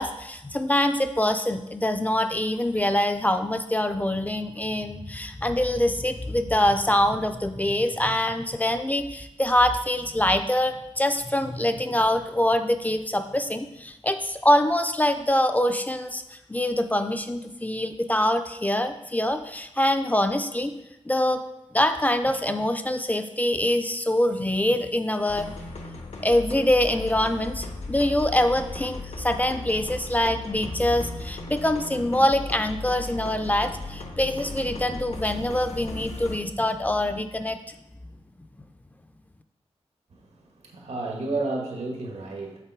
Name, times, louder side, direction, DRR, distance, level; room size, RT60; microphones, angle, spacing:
voice 1, 0.0-20.7 21.1-21.4 21.7-25.5 26.2-37.8, left 1 dB, 15° left, 8 dB, 0.3 m, -24 dB
sound 1, 25.3-36.4, left 3 dB, 80° left, 0.9 m, -37 dB
voice 2, 40.1-42.6, right 2 dB, 90° right, 1 dB, 1.3 m, -32 dB
6.6 x 4.1 x 4.6 m, 0.89 s
wide cardioid pair, 135°, 11 cm